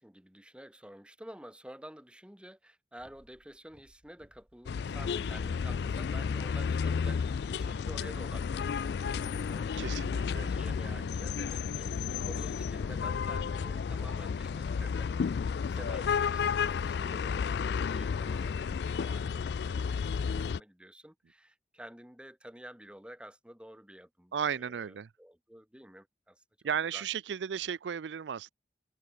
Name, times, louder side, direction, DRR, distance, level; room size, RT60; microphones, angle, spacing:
voice 1, 0.0-7.2 7.5-15.1 15.7-26.4 26.9-27.1, right 1 dB, 5° right, 1.6 m, -50 dB
sound 1, 3.0-11.2, equal, 30° right, 3.2 m, -60 dB
sound 2, 4.7-20.6, left 6 dB, 70° left, 0.3 m, -32 dB
voice 2, 9.8-10.5 10.9-11.1 24.3-25.1 26.6-28.5, right 7 dB, 90° right, 0.4 m, -35 dB
head